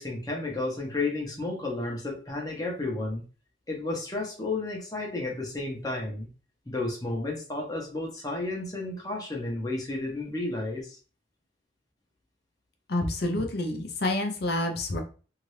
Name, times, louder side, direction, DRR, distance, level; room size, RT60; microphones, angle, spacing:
voice 1, 0.0-3.2 3.7-6.3 6.7-11.0, left 2 dB, 20° left, -1 dB, 0.8 m, -32 dB
voice 2, 12.9-15.0, left 1 dB, 55° left, 3 dB, 0.6 m, -28 dB
2.7 x 2.5 x 3.2 m, 0.36 s
head